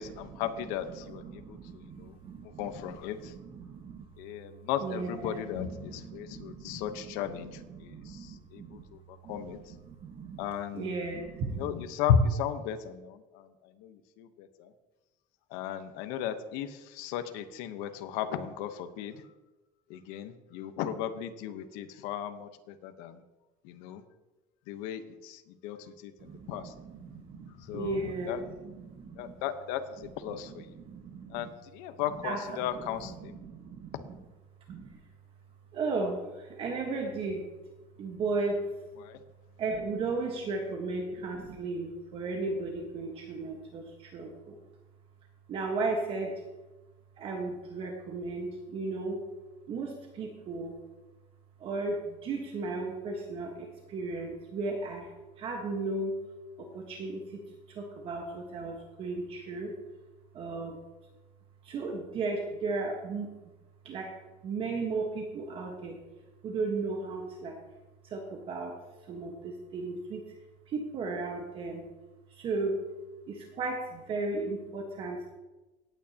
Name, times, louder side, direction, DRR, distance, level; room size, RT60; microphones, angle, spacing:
voice 1, 0.0-2.2 2.4-3.3 4.2-9.6 10.4-11.0 11.5-13.5 13.8-14.7 15.5-19.3 19.9-23.2 23.6-24.0 24.7-26.7 27.4-28.4 29.2-30.7 31.3-33.4 33.9-34.0 39.0-39.2, left 8 dB, 80° left, 9 dB, 1.1 m, -35 dB
voice 2, 1.0-4.1 4.8-8.8 9.2-10.4 10.7-11.7 26.2-29.3 30.0-31.5 32.2-34.2 34.7-35.0 35.7-37.5 38.0-38.7 39.6-44.6 45.5-46.4 47.2-49.2 49.7-50.8 51.6-56.2 56.6-59.7 60.3-60.8 61.6-63.3 63.8-66.0 66.4-67.6 68.0-68.8 69.0-70.3 70.7-71.9 72.3-72.9 73.3-75.3, right 3 dB, 40° right, 1 dB, 1.4 m, -36 dB
17.5 x 9.1 x 2.9 m, 1.1 s
cardioid pair, 150°, 14 cm